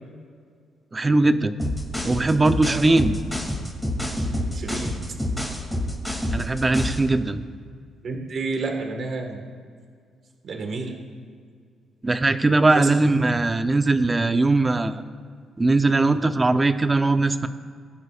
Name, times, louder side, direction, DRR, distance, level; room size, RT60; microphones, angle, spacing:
voice 1, 0.9-1.5 2.0-3.1 6.3-7.4 12.0-14.9 15.6-17.5, right 2 dB, 20° right, 9 dB, 0.7 m, -20 dB
sound 1, 1.6-7.1, left 1 dB, ahead, 2.6 m, -27 dB
voice 2, 4.5-5.0 8.0-9.4 10.4-11.0 12.7-12.9, right 3 dB, 55° right, 3 dB, 1.7 m, -30 dB
21.0 x 11.0 x 2.5 m, 2.1 s
cardioid pair, 90°, 0 cm